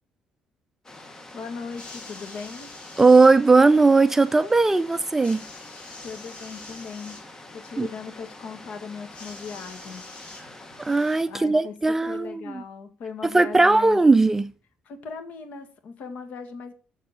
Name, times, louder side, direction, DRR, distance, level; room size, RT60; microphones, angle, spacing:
sound 1, 0.8-11.2, left 2 dB, 20° left, 1.3 m, -45 dB
voice 1, 1.3-2.7 6.0-10.0 11.2-11.7 12.1-14.0 14.9-16.7, left 5 dB, 60° left, 1.9 m, -38 dB
sound 2, 1.7-3.4 5.2-7.3 9.1-10.8 11.8-11.9, left 2 dB, 40° left, 4.5 m, -45 dB
voice 2, 3.0-5.4 7.8-7.9 10.8-12.6 13.2-14.5, right 3 dB, 15° right, 0.4 m, -18 dB
7.4 x 7.0 x 6.5 m
cardioid pair, 125°, 3 cm